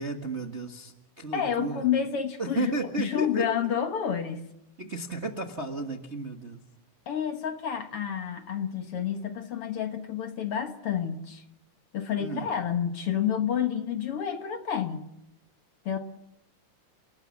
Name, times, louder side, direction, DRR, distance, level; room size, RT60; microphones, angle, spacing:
voice 1, 0.0-1.9 2.4-3.5 4.8-6.6 12.2-12.5, right 3 dB, 35° right, 4 dB, 1.2 m, -33 dB
voice 2, 1.3-2.7 3.0-4.4 7.1-11.4 11.9-15.1 15.9-16.0, left 8 dB, 55° left, 7 dB, 2.0 m, -29 dB
30.0 x 19.0 x 7.2 m, 0.82 s
omnidirectional pair, 3.4 m